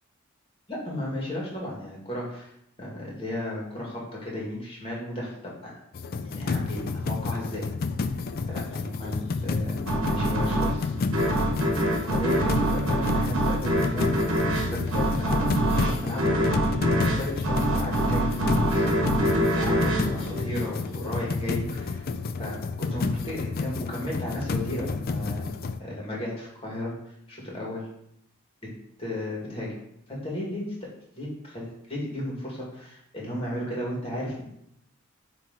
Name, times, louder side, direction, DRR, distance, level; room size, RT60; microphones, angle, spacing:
voice 1, 0.7-2.5 2.8-5.7 6.2-7.6 8.5-10.9 12.1-14.1 14.7-16.7 17.0-18.8 19.2-22.1 22.4-25.5 25.8-27.9 28.6-28.7 29.0-29.7 30.1-30.7 31.1-34.5, left 1 dB, 25° left, -4 dB, 2.0 m, -34 dB
sound 1, 5.9-25.8, left 4 dB, 45° left, 0.3 m, -30 dB
sound 2, 9.9-21.1, right 1 dB, 65° right, 1.1 m, -25 dB
8.3 x 3.1 x 4.0 m, 0.73 s
head